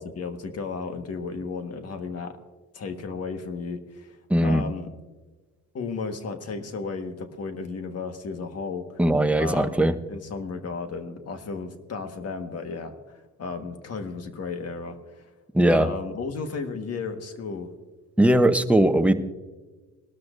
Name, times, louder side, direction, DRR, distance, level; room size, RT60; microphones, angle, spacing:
voice 1, 0.0-2.4 2.7-4.2 4.4-4.9 5.7-8.8 9.4-9.8 10.1-12.9 13.4-15.2 15.7-17.7, left 4 dB, 55° left, 7 dB, 1.5 m, -34 dB
voice 2, 4.3-4.6 9.0-9.9 15.5-15.9 18.2-19.1, right 1 dB, 5° right, 8 dB, 0.8 m, -19 dB
20.0 x 13.0 x 2.5 m, 1.3 s
cardioid pair, 90°, 30 cm